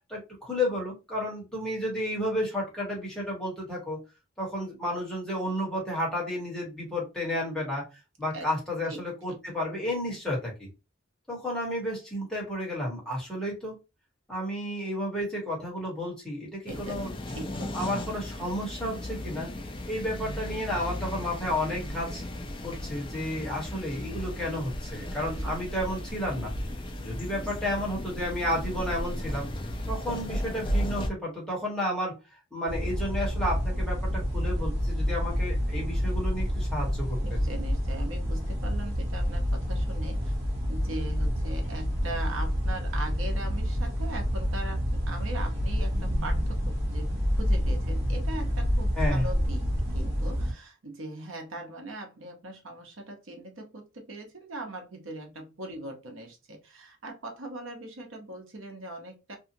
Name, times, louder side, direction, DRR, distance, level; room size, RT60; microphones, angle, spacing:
voice 1, 0.1-4.0 4.4-7.9 8.2-10.7 11.3-13.7 14.3-17.1 17.7-19.5 19.9-22.2 22.6-26.5 27.0-29.5 29.8-32.1 32.5-37.4 48.9-49.3, left 1 dB, 5° left, -5 dB, 1.3 m, -32 dB
sound 1, 16.7-31.1, left 1 dB, 25° left, 0.4 m, -35 dB
voice 2, 16.7-17.0 17.3-17.8 25.0-25.1 25.4-25.6 26.9-27.1 30.1-30.3 37.2-40.4 40.7-59.4, right 2 dB, 70° right, 3 dB, 0.9 m, -40 dB
sound 2, 32.7-50.5, equal, 30° right, 1.1 m, -28 dB
2.7 x 2.4 x 2.6 m, 0.27 s
head